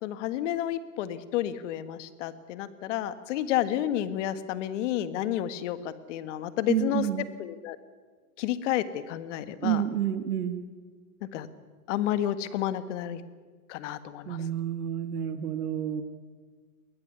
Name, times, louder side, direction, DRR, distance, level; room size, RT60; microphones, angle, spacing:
voice 1, 0.0-7.1 7.4-7.8 8.4-9.8 11.3-11.5 11.9-13.2 13.7-14.4, left 12 dB, 50° left, 13 dB, 1.7 m, -30 dB
voice 2, 6.7-7.3 9.6-10.6 14.2-16.0, right 10 dB, 75° right, 8 dB, 1.8 m, -29 dB
22.0 x 17.0 x 9.6 m, 1.5 s
hypercardioid pair, 145°, 45 cm